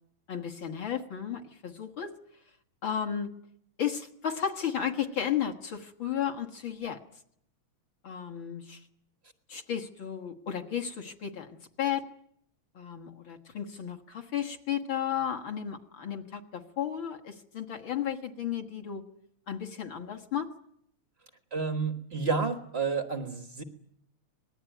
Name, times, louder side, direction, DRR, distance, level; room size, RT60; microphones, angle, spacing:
voice 1, 0.3-2.1 2.8-3.3 3.8-7.0 8.0-8.8 9.5-12.1 12.8-19.0 19.5-20.5, left 9 dB, 50° left, 3 dB, 1.8 m, -33 dB
voice 2, 21.5-23.6, right 4 dB, 50° right, 8 dB, 0.7 m, -30 dB
25.5 x 20.0 x 9.2 m, 0.72 s
omnidirectional pair, 3.3 m